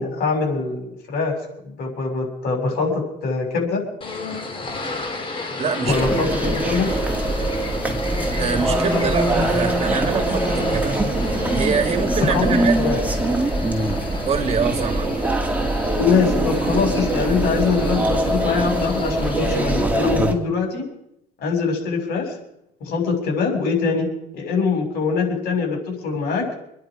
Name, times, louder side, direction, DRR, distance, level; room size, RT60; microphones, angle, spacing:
voice 1, 0.0-1.3 1.6-3.8 5.9-6.9 12.3-12.5 12.8-13.0 16.0-20.9 21.4-22.3 22.8-24.1 24.3-26.5, left 5 dB, 70° left, 1 dB, 6.5 m, -23 dB
sound 1, 4.0-19.8, left 2 dB, 30° left, 3.3 m, -31 dB
voice 2, 5.6-6.2 8.4-11.0 11.5-13.0 14.3-15.1, right 6 dB, 40° right, 8 dB, 2.0 m, -25 dB
sound 2, 5.9-20.3, right 2 dB, 10° right, 2.2 m, -23 dB
26.0 x 10.5 x 5.0 m, 0.79 s
cardioid pair, 110°, 17 cm